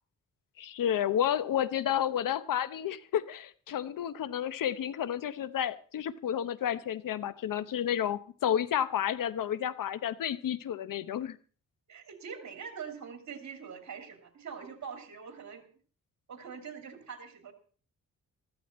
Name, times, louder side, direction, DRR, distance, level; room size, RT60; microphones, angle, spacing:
voice 1, 0.6-11.4, left 10 dB, 75° left, 15 dB, 0.9 m, -31 dB
voice 2, 11.9-15.7 16.3-17.5, right 6 dB, 55° right, 6 dB, 2.7 m, -43 dB
15.0 x 13.5 x 4.2 m, 0.42 s
cardioid pair, 105°, 33 cm